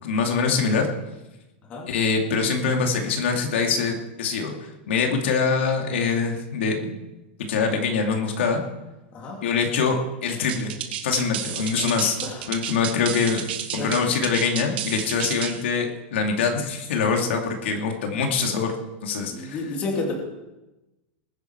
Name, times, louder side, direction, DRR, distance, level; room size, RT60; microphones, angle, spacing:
voice 1, 0.0-0.9 1.9-4.5 4.9-6.9 7.5-8.6 9.4-10.7 11.0-12.2 12.5-13.4 13.7-18.7 19.0-19.6, left 5 dB, 75° left, 2 dB, 2.7 m, -24 dB
sound 1, 10.5-15.6, right 10 dB, 60° right, 1.8 m, -31 dB
voice 2, 13.8-14.1 19.3-20.1, left 3 dB, 20° left, -1 dB, 2.6 m, -31 dB
20.5 x 10.5 x 4.7 m, 1.0 s
supercardioid pair, 180°, 6 cm